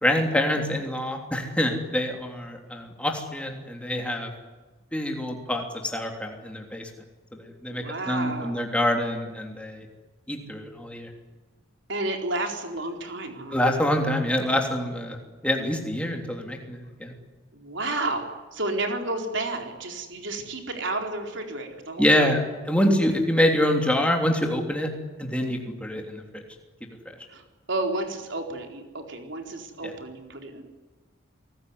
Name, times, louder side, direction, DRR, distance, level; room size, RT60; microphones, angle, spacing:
voice 1, 0.0-4.3 4.9-6.9 7.3-9.9 10.3-11.1 13.5-15.2 15.4-17.1 22.0-22.4 22.7-24.9 25.2-26.4, left 1 dB, 5° left, 2 dB, 3.3 m, -25 dB
voice 2, 7.7-8.7 11.9-13.6 17.5-22.3 27.3-30.6, right 2 dB, 60° right, 4 dB, 4.3 m, -31 dB
29.5 x 19.5 x 9.7 m, 1.3 s
head